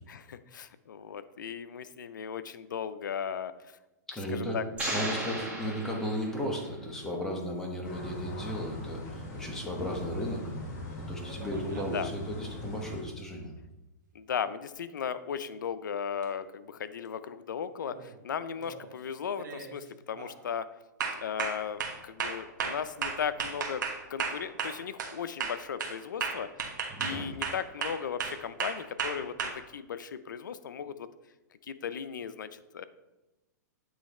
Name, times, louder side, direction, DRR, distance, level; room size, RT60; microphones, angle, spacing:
voice 1, 0.1-3.8 4.3-4.7 11.9-12.1 14.1-20.7 21.2-23.8 24.1-26.5 27.0-31.1 31.7-32.8, left 7 dB, 85° left, 13 dB, 0.5 m, -36 dB
voice 2, 4.1-4.6 4.9-10.4 11.0-13.5 26.9-27.3, equal, 5° left, -1 dB, 1.2 m, -35 dB
sound 1, 4.8-6.7, right 1 dB, 15° right, 1.9 m, -35 dB
sound 2, 7.8-13.0, left 1 dB, 45° left, 2.2 m, -40 dB
sound 3, 11.3-12.0 16.2-16.3 17.8-18.1 18.6-18.9 19.4-19.7 20.2-20.4 21.0-25.2 25.4-29.5, right 5 dB, 80° right, 1.2 m, -34 dB
8.6 x 3.2 x 4.2 m, 1.0 s
hypercardioid pair, 135°, 10 cm